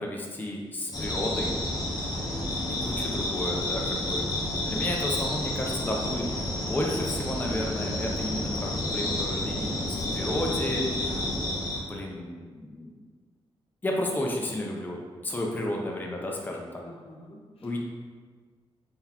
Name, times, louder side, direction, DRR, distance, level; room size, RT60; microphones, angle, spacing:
voice 1, 0.0-1.5 2.8-4.2 4.7-6.3 6.6-10.8 11.9-13.0 13.8-16.8 17.6-17.8, left 1 dB, 20° left, -1 dB, 0.5 m, -32 dB
sound 1, 0.9-11.8, left 1 dB, 40° left, 0.9 m, -30 dB
voice 2, 16.8-17.8, left 1 dB, 75° left, -1 dB, 0.7 m, -50 dB
3.9 x 3.4 x 2.9 m, 1.5 s
cardioid pair, 90°, 10 cm